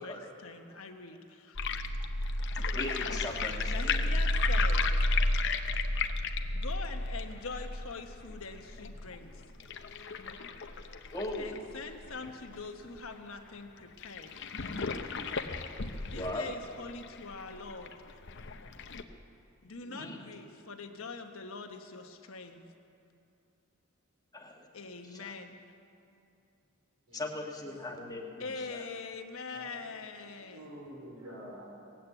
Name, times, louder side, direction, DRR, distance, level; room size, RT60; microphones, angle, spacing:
voice 1, 0.0-1.6 3.7-5.2 6.5-9.4 11.4-14.3 16.0-18.0 19.6-22.7 24.7-25.6 28.4-30.7, left 4 dB, 85° left, 5 dB, 1.2 m, -43 dB
sound 1, 1.6-12.6 13.0-13.1 13.3-13.4 14.0-19.0, left 2 dB, 60° left, 0.7 m, -32 dB
voice 2, 2.7-4.0 11.1-11.6 16.2-16.5 19.9-20.2 24.3-24.7 25.1-25.3 27.1-28.8, left 1 dB, 20° left, 1 dB, 1.3 m, -39 dB
voice 3, 27.1-28.0 29.5-31.6, right 1 dB, 90° right, -3 dB, 4.4 m, -49 dB
18.0 x 8.7 x 8.1 m, 2.7 s
head